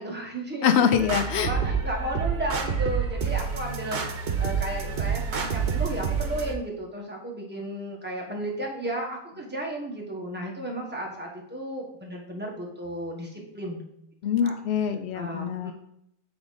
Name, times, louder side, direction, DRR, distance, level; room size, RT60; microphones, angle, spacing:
voice 1, 0.0-0.7 1.1-4.0 4.4-13.9 14.4-14.5 15.1-15.7, right 1 dB, 10° right, -1 dB, 1.2 m, -34 dB
voice 2, 0.6-1.5 14.2-15.7, left 8 dB, 85° left, 10 dB, 0.9 m, -24 dB
sound 1, 1.0-6.5, right 6 dB, 70° right, 1.0 m, -28 dB
7.9 x 3.6 x 4.0 m, 0.76 s
omnidirectional pair, 1.1 m